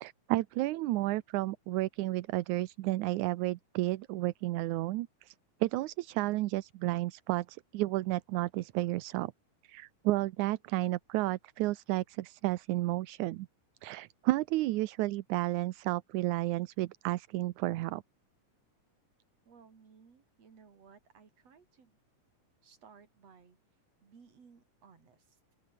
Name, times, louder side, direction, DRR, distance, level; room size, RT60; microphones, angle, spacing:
voice 1, 0.0-5.3 5.6-9.3 9.7-13.5 13.8-18.0, right 17 dB, 80° right, 2.1 m, -32 dB
voice 2, 19.5-22.0 22.6-23.6 24.0-25.5, right 6 dB, 55° right, 4.5 m, -59 dB
open air
omnidirectional pair, 3.6 m